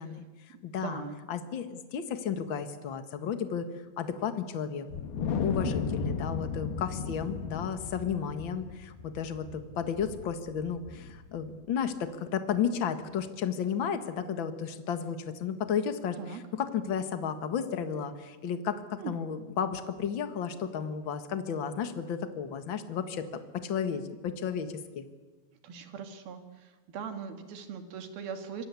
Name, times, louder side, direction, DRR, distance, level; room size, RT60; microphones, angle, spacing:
voice 1, 0.0-1.0 1.3-3.7 4.0-4.9 5.2-23.3 23.5-25.0, left 7 dB, 45° left, 9 dB, 1.7 m, -33 dB
voice 2, 0.5-1.2 5.6-5.9 16.2-16.4 19.0-19.2 25.6-28.7, right 6 dB, 80° right, 7 dB, 4.0 m, -40 dB
Wind, 4.9-11.4, left 5 dB, 85° left, 3.5 m, -35 dB
26.0 x 23.5 x 8.4 m, 1.2 s
omnidirectional pair, 4.3 m